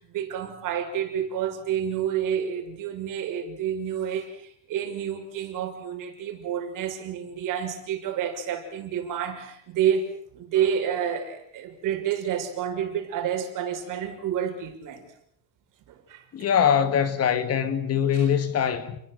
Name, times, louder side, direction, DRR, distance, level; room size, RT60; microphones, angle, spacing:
voice 1, 0.0-15.1 15.9-16.5 18.1-18.3, right 9 dB, 55° right, 6.0 m, -29 dB
voice 2, 16.3-19.0, left 8 dB, 40° left, 2.2 m, -23 dB
29.5 x 21.5 x 7.8 m
cardioid pair, 180°, 37 cm